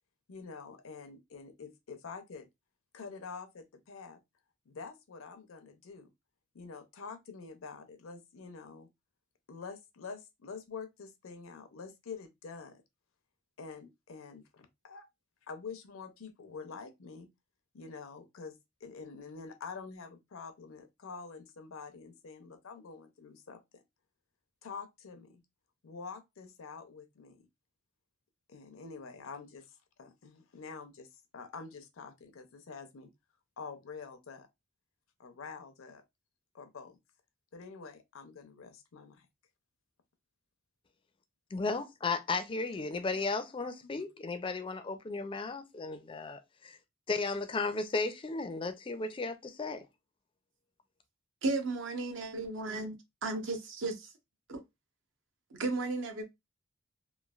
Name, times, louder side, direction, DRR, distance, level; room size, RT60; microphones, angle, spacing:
voice 1, 0.3-2.5 2.9-4.2 4.7-6.1 6.5-8.9 9.5-12.8 13.6-15.1 15.5-17.3 17.7-23.8 24.6-25.4 25.8-27.4 28.5-29.7 30.0-33.1 33.6-34.5 35.2-36.0 36.5-37.0 37.5-39.3 43.9-44.0, left 5 dB, 80° left, 0.6 m, -47 dB
voice 2, 41.5-46.8 47.1-49.9, left 3 dB, 25° left, 0.3 m, -35 dB
voice 3, 51.4-52.9 53.2-54.1 54.5-54.6 55.6-56.2, right 3 dB, 65° right, 0.6 m, -34 dB
3.1 x 2.3 x 2.3 m
head